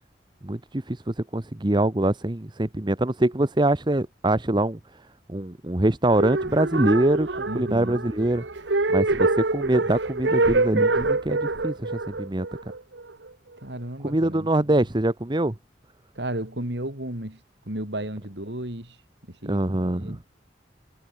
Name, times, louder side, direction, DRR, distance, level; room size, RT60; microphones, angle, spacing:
voice 1, 0.4-4.8 5.3-8.4 8.9-12.5 14.0-15.5 19.4-20.2, right 1 dB, 25° right, 1.0 m, -24 dB
sound 1, 6.1-13.3, right 3 dB, 90° right, 1.5 m, -25 dB
voice 2, 7.5-8.0 13.6-14.5 16.1-17.4 17.7-19.0 19.3-19.6 20.0-20.2, right 1 dB, 70° right, 4.7 m, -33 dB
head